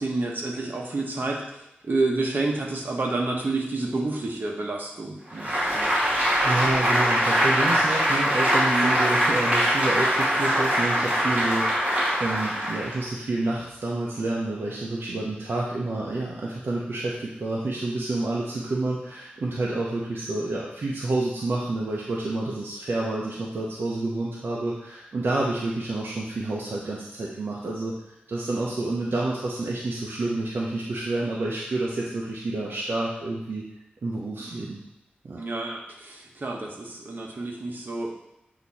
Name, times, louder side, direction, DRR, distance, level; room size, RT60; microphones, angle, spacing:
voice 1, 0.0-5.9 6.3-6.4 8.7-8.9 34.4-34.7 35.3-38.1, right 2 dB, 55° right, -1 dB, 1.2 m, -29 dB
Applause, 5.3-13.1, equal, 35° right, 2.3 m, -23 dB
voice 2, 6.4-27.9 28.3-33.6 34.0-34.8 35.2-35.4, right 2 dB, 70° right, -4 dB, 0.9 m, -29 dB
8.2 x 2.9 x 4.2 m, 0.84 s
wide cardioid pair, 75°, 4 cm